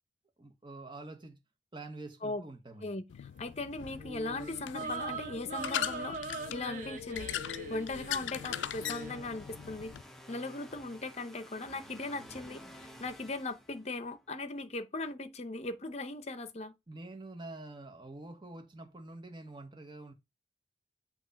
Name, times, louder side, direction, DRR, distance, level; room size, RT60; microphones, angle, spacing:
voice 1, 0.4-1.4 1.7-3.0 16.9-20.1, right 2 dB, 25° right, 1.3 m, -46 dB
voice 2, 2.8-6.2 6.5-7.3 7.7-9.9 10.3-16.7, left 2 dB, 35° left, 0.8 m, -38 dB
sound 1, 3.1-10.0, left 10 dB, 85° left, 0.3 m, -40 dB
sound 2, 4.0-9.2, right 3 dB, 45° right, 1.2 m, -42 dB
sound 3, 7.4-14.3, equal, ahead, 0.9 m, -53 dB
8.0 x 3.0 x 5.8 m
head